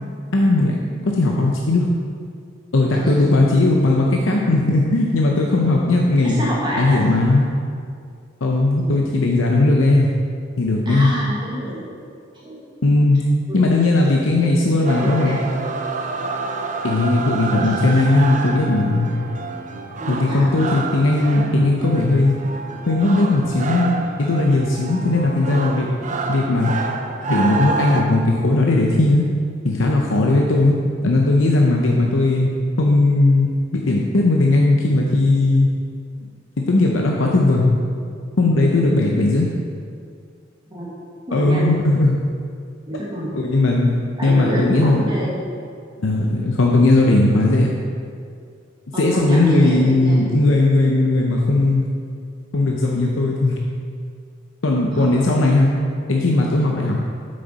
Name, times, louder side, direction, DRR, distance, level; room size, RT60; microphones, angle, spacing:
voice 1, 0.3-1.9 2.7-6.4 6.8-7.4 8.4-10.1 10.6-11.1 12.8-13.2 13.5-15.4 16.8-19.2 20.1-22.4 22.9-23.9 24.2-25.9 26.3-26.7 27.3-29.2 29.6-30.8 31.0-32.5 32.8-35.7 36.7-37.7 38.4-39.5 41.3-42.2 43.3-43.9 44.2-45.0 46.0-47.7 49.0-51.9 52.5-53.6 54.6-55.7 56.1-57.0, left 2 dB, 75° left, -1 dB, 0.7 m, -17 dB
voice 2, 2.9-3.2 6.2-7.0 8.8-9.0 10.8-11.9 12.4-12.6 13.5-13.9 14.1-14.3 14.7-15.6 17.6-17.7 20.0-20.6 37.9-38.0 40.7-40.9 41.3-41.6 42.9-43.3 44.2-45.3 48.9-50.2 54.9-55.2, equal, 25° right, -6 dB, 1.5 m, -28 dB
sound 1, 14.8-28.0, right 4 dB, 40° right, 0.5 m, -28 dB
7.9 x 6.5 x 4.0 m, 2.3 s
head